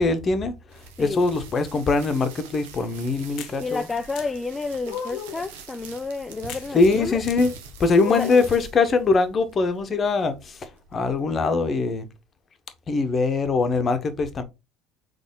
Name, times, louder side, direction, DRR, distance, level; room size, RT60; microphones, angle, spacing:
voice 1, 0.0-3.9 6.7-7.5 7.8-12.1 12.9-14.4, left 3 dB, 35° left, 0.9 m, -22 dB
sound 1, 0.7-11.7, right 5 dB, 75° right, 0.8 m, -44 dB
sound 2, 3.4-3.6 4.2-4.3 4.9-5.4 6.5-6.7 7.3-7.4 8.0-8.5, left 8 dB, 60° left, 0.7 m, -34 dB
voice 2, 3.6-7.2 8.1-8.3, left 4 dB, 20° left, 0.4 m, -30 dB
4.1 x 3.2 x 3.8 m
hypercardioid pair, 70°, 0 cm